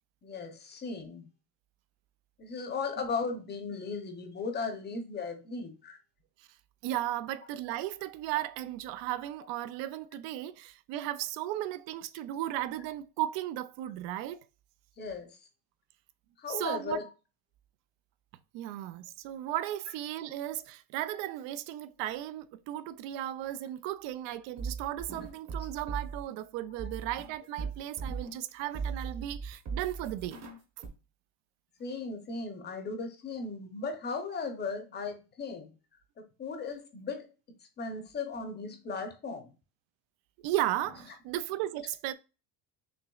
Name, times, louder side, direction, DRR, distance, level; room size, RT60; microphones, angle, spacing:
voice 1, 0.2-1.3 2.4-6.0 15.0-15.4 16.4-17.1 31.8-35.7 36.2-37.3 37.8-39.5, left 4 dB, 25° left, 0.6 m, -37 dB
voice 2, 6.8-14.4 16.5-17.0 18.5-30.4 40.4-42.1, right 13 dB, 90° right, 0.5 m, -35 dB
sound 1, 24.3-26.3 26.8-28.5 28.7-30.9, right 5 dB, 40° right, 1.0 m, -38 dB
5.9 x 2.9 x 2.3 m
cardioid pair, 170°, 42 cm